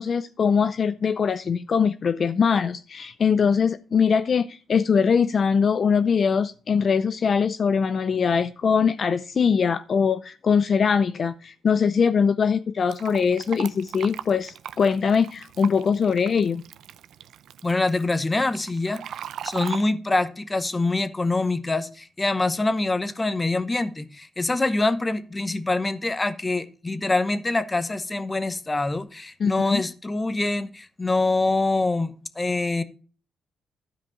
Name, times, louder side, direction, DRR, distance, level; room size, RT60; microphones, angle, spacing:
voice 1, 0.0-16.6 29.4-29.8, left 6 dB, 50° left, 12 dB, 0.5 m, -22 dB
Fill (with liquid), 12.9-19.8, right 10 dB, 80° right, 0.6 m, -39 dB
voice 2, 17.6-19.0 19.4-32.8, left 2 dB, 20° left, 13 dB, 1.0 m, -25 dB
12.5 x 5.2 x 5.8 m, 0.38 s
cardioid pair, 100°, 0 cm